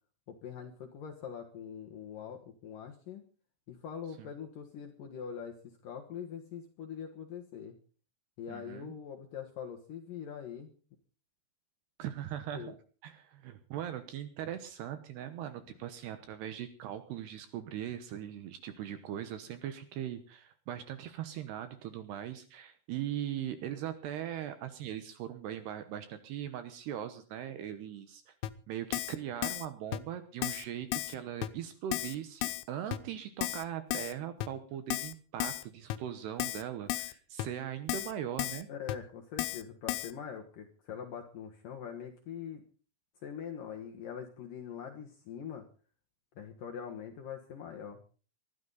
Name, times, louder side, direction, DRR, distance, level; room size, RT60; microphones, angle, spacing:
voice 1, 0.3-3.2 3.7-7.8 8.4-10.7 12.5-12.7 38.7-42.6 43.2-45.7 46.4-48.0, left 8 dB, 65° left, 3 dB, 2.3 m, -43 dB
voice 2, 8.5-8.9 12.0-12.7 13.0-28.3 28.7-38.7, right 10 dB, 75° right, 11 dB, 2.7 m, -40 dB
Keyboard (musical), 28.4-28.5 28.9-29.2 29.4-29.7 29.9-30.0 30.4-30.7 30.9-31.2 31.4-31.5 31.9-32.2 32.4-32.6 32.9-33.0 33.4-33.6 33.9-34.1 34.4-34.5 34.9-35.1 35.4-35.6 35.9-36.0 36.4-36.6 36.9-37.1 37.4-37.5 37.9-38.1 38.4-38.6 38.9-39.0 39.4-39.6 39.9-40.1, left 16 dB, 90° left, 3.5 m, -34 dB
21.0 x 13.0 x 4.0 m, 0.39 s
omnidirectional pair, 5.6 m